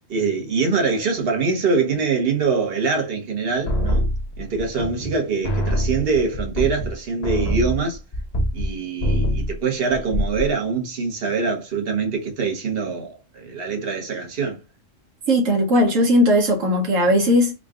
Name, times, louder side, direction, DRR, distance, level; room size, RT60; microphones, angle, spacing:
voice 1, 0.1-4.1 4.4-8.0 8.5-14.6, right 4 dB, 50° right, 1.3 m, -24 dB
sound 1, 3.7-5.2 5.4-8.7 9.0-9.6 9.9-10.5, equal, 35° left, 0.8 m, -24 dB
voice 2, 15.3-17.5, equal, 75° right, 1.2 m, -17 dB
3.8 x 2.3 x 3.6 m
omnidirectional pair, 1.3 m